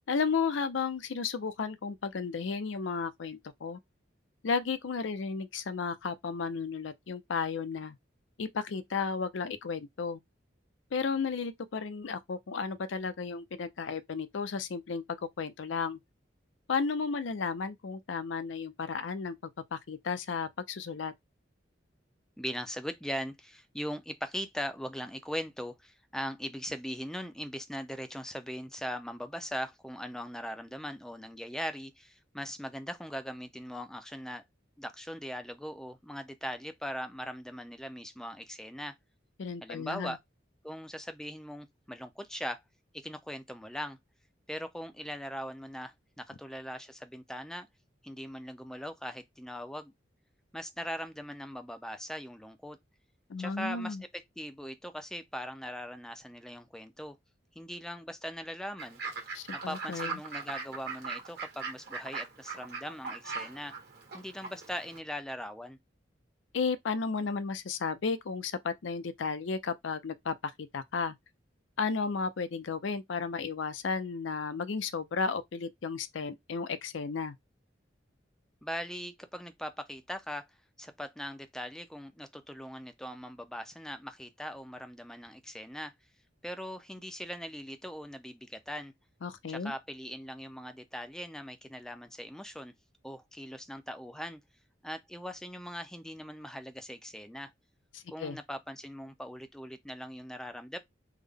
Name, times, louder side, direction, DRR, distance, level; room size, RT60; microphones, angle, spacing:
voice 1, 0.1-3.8 4.4-8.0 8.4-10.2 10.9-15.0 15.4-16.0 16.7-19.4 19.7-21.1 39.4-40.2 53.3-54.0 59.3-60.2 66.5-71.1 71.8-77.4 89.2-89.7 98.2-98.4, left 5 dB, 80° left, 0.5 m, -33 dB
voice 2, 22.4-34.4 34.8-38.9 39.6-40.2 40.6-42.6 42.9-44.0 44.5-47.7 48.0-49.9 50.5-52.8 53.4-57.2 57.6-59.0 59.5-63.7 64.1-65.8 78.6-80.5 80.8-85.9 86.4-88.9 89.5-92.7 93.0-94.4 94.8-97.5 98.1-100.8, equal, 5° left, 0.4 m, -40 dB
Fowl / Bird, 58.8-65.0, right 4 dB, 55° right, 1.3 m, -40 dB
3.6 x 2.1 x 3.4 m
head